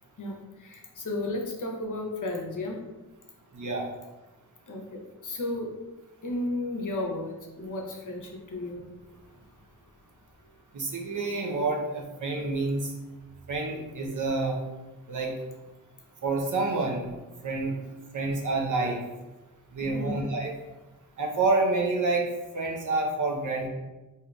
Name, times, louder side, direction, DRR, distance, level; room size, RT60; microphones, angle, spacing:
voice 1, 0.2-2.8 4.7-5.8 6.2-8.8 19.9-20.3, left 2 dB, 55° left, 0 dB, 0.8 m, -34 dB
voice 2, 3.5-3.9 10.7-12.9 13.5-14.6 15.1-15.3 16.2-17.1 17.4-17.7 18.1-19.0 19.7-20.5 21.2-22.2 22.5-23.7, right 3 dB, 55° right, 1 dB, 0.7 m, -28 dB
3.6 x 2.7 x 2.3 m, 1.1 s
cardioid pair, 50°, 37 cm